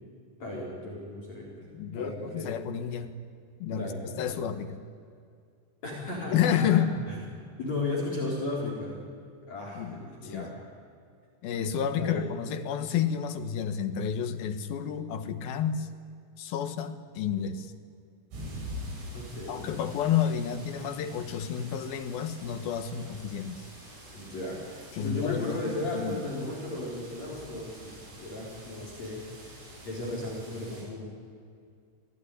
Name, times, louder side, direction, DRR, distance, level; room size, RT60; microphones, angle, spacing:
voice 1, 0.4-1.7 1.9-2.5 3.7-4.4 5.8-6.7 7.1-7.2 7.6-9.0 9.5-10.5 12.0-12.3 19.1-19.6 24.1-27.9 28.2-31.1, left 2 dB, 35° left, -3 dB, 5.1 m, -35 dB
voice 2, 1.7-3.1 3.6-3.9 4.2-4.7 6.3-7.0 9.8-10.5 11.4-15.9 16.4-17.7 19.5-23.6 24.9-26.2, left 8 dB, 70° left, 9 dB, 2.5 m, -30 dB
sound 1, 18.3-30.8, equal, 70° right, 9.9 m, -45 dB
25.0 x 18.0 x 10.0 m, 2.3 s
omnidirectional pair, 5.4 m